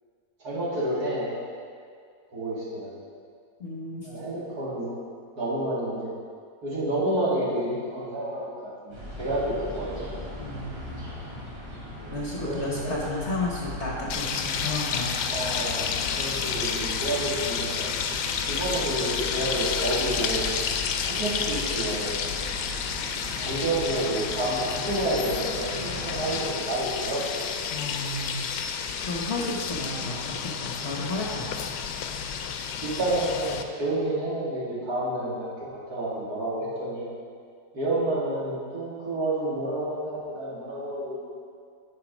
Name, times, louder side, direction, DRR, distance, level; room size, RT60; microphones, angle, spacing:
voice 1, 0.4-1.3 2.3-2.9 4.0-4.9 5.4-6.1 6.6-10.1 12.0-12.2 12.4-13.0 15.3-17.9 18.5-20.5 21.0-22.1 23.4-27.5 31.3-31.5 32.8-37.1 37.7-41.2, right 1 dB, 60° right, -8 dB, 2.7 m, -29 dB
voice 2, 3.6-4.1 10.4-11.0 12.1-15.1 27.7-28.5 29.0-31.7, left 2 dB, 45° left, -3 dB, 1.2 m, -32 dB
sound 1, 8.9-26.4, left 1 dB, 80° right, 3.4 m, -39 dB
sound 2, 14.1-33.6, left 7 dB, 75° left, 1.2 m, -30 dB
9.3 x 6.0 x 5.2 m, 2.2 s
omnidirectional pair, 1.9 m